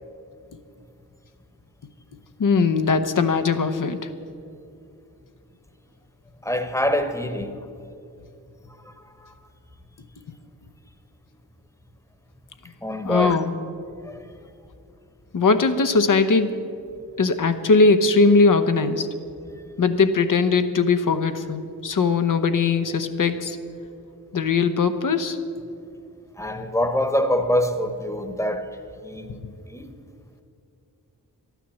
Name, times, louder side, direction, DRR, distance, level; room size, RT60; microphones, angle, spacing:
voice 1, 2.4-4.0 13.0-13.5 15.3-16.5 17.2-19.1 19.8-23.6 24.3-25.4, left 4 dB, 55° left, 0.9 m, -20 dB
voice 2, 6.4-7.5 8.8-9.3 12.8-13.4 14.0-14.4 25.8-25.9 26.3-28.8 29.0-29.3 29.6-29.9, left 1 dB, 10° left, 1.2 m, -25 dB
12.5 x 9.2 x 7.2 m
cardioid pair, 50°, 37 cm